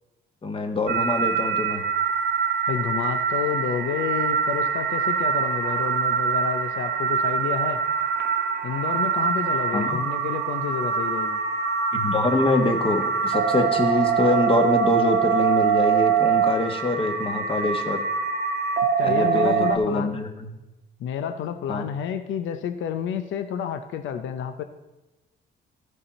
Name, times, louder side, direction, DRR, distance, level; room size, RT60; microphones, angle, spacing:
voice 1, 0.4-1.8 9.7-10.0 11.9-18.0 19.0-20.3 21.7-21.9, left 2 dB, 25° left, 5 dB, 1.3 m, -24 dB
sound 1, 0.9-19.8, right 6 dB, 55° right, 1.0 m, -24 dB
voice 2, 2.7-7.8 8.6-11.4 19.0-20.1 21.0-24.6, left 8 dB, 75° left, 9 dB, 0.6 m, -29 dB
14.5 x 5.4 x 4.2 m, 1.1 s
cardioid pair, 90°, 20 cm